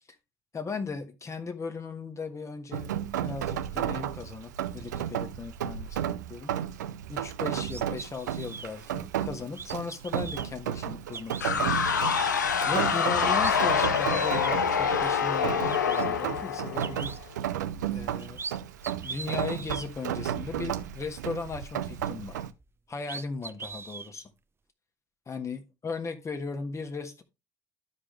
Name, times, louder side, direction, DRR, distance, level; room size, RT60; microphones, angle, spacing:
voice 1, 0.5-2.9 3.2-6.5 7.1-11.9 12.7-17.4 17.9-18.4 19.0-22.4 22.9-24.3 25.3-27.2, left 4 dB, 30° left, 1.4 m, -37 dB
Rain, 2.7-22.5, right 10 dB, 80° right, 0.4 m, -33 dB
sound 1, 7.6-8.7 9.5-10.5 11.1-11.4 11.8-12.4 12.9-13.0 13.3-14.5 15.3-15.4 15.7-16.0 16.8-17.2 18.0-18.5 18.8-19.9 22.6-22.7 23.0-24.1, right 5 dB, 25° right, 0.7 m, -40 dB
sound 2, 11.4-17.2, left 6 dB, 90° left, 0.6 m, -26 dB
12.0 x 5.0 x 3.2 m
hypercardioid pair, 55°, 9 cm